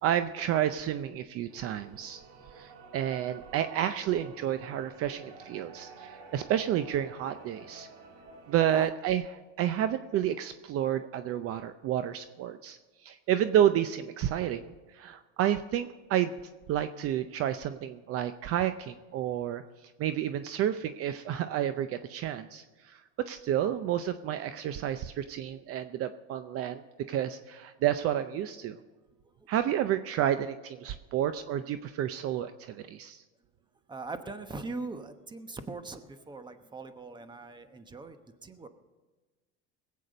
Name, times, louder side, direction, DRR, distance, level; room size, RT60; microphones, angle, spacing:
voice 1, 0.0-2.2 2.6-7.9 8.5-9.2 9.6-16.3 16.7-19.6 20.0-26.8 27.1-28.8 29.5-33.2, right 11 dB, 45° right, 11 dB, 0.6 m, -30 dB
sound 1, 1.5-8.8, right 5 dB, 80° right, 2.2 m, -50 dB
voice 2, 33.9-38.2 38.4-38.7, right 3 dB, 15° right, 9 dB, 1.0 m, -41 dB
20.5 x 8.5 x 5.2 m, 1.2 s
supercardioid pair, 120°, 31 cm